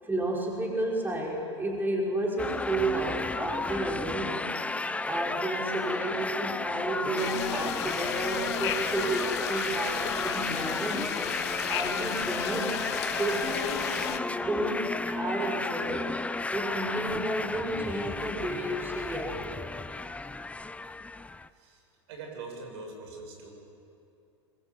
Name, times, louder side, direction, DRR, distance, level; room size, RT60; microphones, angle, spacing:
voice 1, 0.0-4.4 5.1-11.1 11.7-12.8 13.2-16.2 16.5-19.7, right 2 dB, 15° right, -2 dB, 5.6 m, -32 dB
sound 1, 2.4-21.5, left 3 dB, 10° left, 0.7 m, -33 dB
sound 2, 7.2-14.2, left 13 dB, 65° left, 1.2 m, -35 dB
voice 2, 22.1-23.5, right 3 dB, 70° right, 2 dB, 7.0 m, -42 dB
25.0 x 22.5 x 8.4 m, 2.8 s
hypercardioid pair, 90°, 15 cm